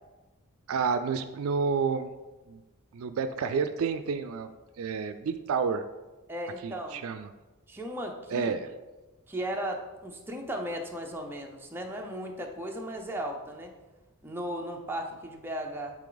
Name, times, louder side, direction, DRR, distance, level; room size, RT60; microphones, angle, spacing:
voice 1, 0.7-2.1 2.5-2.6 2.9-4.5 4.8-5.8 6.6-7.3 8.3-8.7, right 5 dB, 70° right, 10 dB, 0.4 m, -29 dB
voice 2, 6.3-7.0 7.7-8.5 9.3-13.7 14.2-15.9, equal, 10° right, 1 dB, 0.6 m, -36 dB
8.3 x 3.3 x 3.9 m, 1.1 s
head